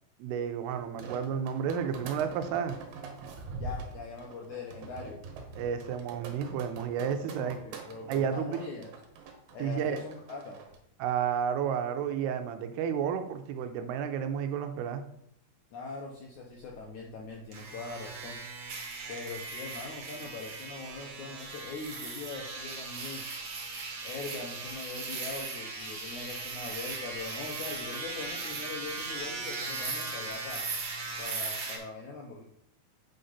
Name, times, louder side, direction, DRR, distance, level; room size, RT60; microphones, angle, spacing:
voice 1, 0.2-2.8 5.5-7.6 8.1-8.6 9.6-10.0 11.0-15.1, right 8 dB, 85° right, 8 dB, 2.6 m, -31 dB
sound 1, 0.7-10.8, right 4 dB, 70° right, 2.6 m, -44 dB
voice 2, 3.5-5.2 7.0-8.9 9.5-10.6 15.7-18.4 19.1-23.3 24.0-30.7 31.2-32.4, left 4 dB, 75° left, -1 dB, 1.7 m, -42 dB
sound 2, 17.5-31.8, right 3 dB, 50° right, 2.3 m, -38 dB
8.4 x 3.9 x 5.6 m, 0.73 s
omnidirectional pair, 4.7 m